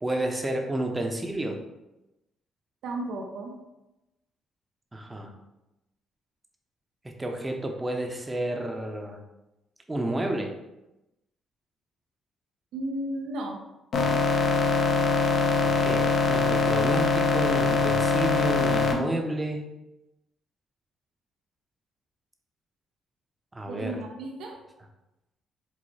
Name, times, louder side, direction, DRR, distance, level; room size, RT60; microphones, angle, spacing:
voice 1, 0.0-1.6 4.9-5.3 7.0-9.2 9.9-10.5 15.6-19.6 23.5-24.0, right 1 dB, 15° right, 3 dB, 0.6 m, -30 dB
voice 2, 2.8-3.5 12.7-13.6 23.7-24.6, right 1 dB, 85° right, 1 dB, 0.5 m, -34 dB
sound 1, 13.9-18.9, left 4 dB, 65° left, 0.6 m, -23 dB
4.7 x 2.0 x 4.1 m, 0.95 s
cardioid pair, 90°, 0 cm